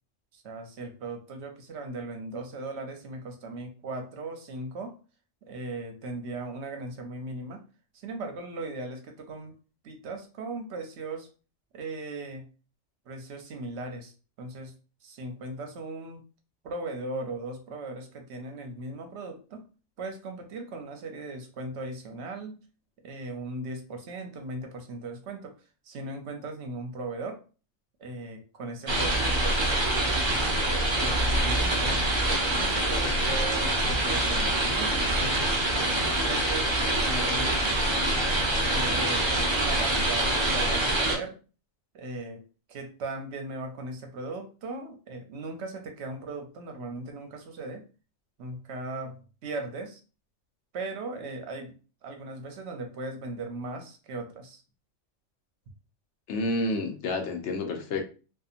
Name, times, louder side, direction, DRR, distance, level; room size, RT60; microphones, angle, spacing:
voice 1, 0.3-5.0 5.4-7.6 7.9-9.5 9.8-11.3 11.7-12.5 13.1-14.1 14.4-14.7 15.0-16.2 16.6-19.7 20.0-22.6 23.0-25.6 25.8-27.4 28.0-32.0 32.5-35.5 36.2-37.6 38.7-41.4 41.9-42.4 42.7-47.8 48.4-50.0 50.7-51.7 52.0-54.6, right 2 dB, 70° right, 5 dB, 0.8 m, -38 dB
sound 1, 28.9-41.2, right 1 dB, 35° right, 0.4 m, -25 dB
voice 2, 56.3-58.0, left 2 dB, 70° left, 5 dB, 0.8 m, -29 dB
2.7 x 2.4 x 2.4 m, 0.34 s
omnidirectional pair, 1.3 m